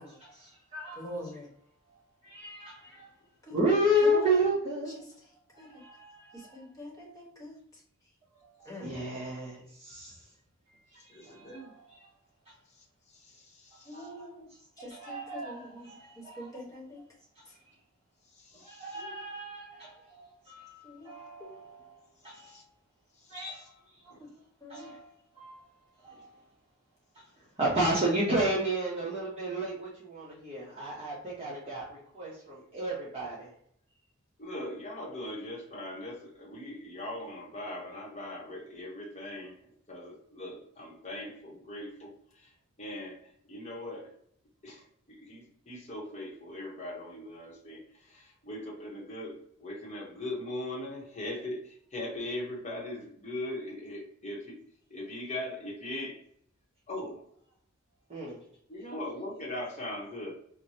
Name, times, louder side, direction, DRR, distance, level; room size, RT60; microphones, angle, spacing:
voice 1, 0.0-1.1 2.2-3.1 3.5-5.0 5.5-6.6 8.4-10.2 10.9-12.1 13.9-14.2 14.8-16.5 18.6-22.6 23.3-23.7 24.7-25.1 25.4-25.6 26.0-26.3 27.6-33.5 58.1-58.4, equal, 30° right, -7 dB, 1.0 m, -32 dB
voice 2, 1.0-1.5 3.5-3.7 4.0-4.4 5.6-5.7 6.3-7.5 8.6-8.9 13.8-14.5 14.8-17.0 18.9-19.1 20.8-21.1 21.4-21.5 24.2-24.3 24.6-24.9, left 1 dB, 15° left, -4 dB, 1.1 m, -44 dB
voice 3, 11.1-11.7 13.1-14.1 18.4-19.0 22.4-22.6 23.2-23.7 24.1-24.2 26.1-26.2 34.4-42.5 42.8-43.2 43.5-44.1 44.6-54.6 54.9-56.2 56.9-57.2 58.7-60.3, left 1 dB, 30° left, -1 dB, 0.9 m, -40 dB
4.7 x 2.2 x 2.7 m, 0.68 s
head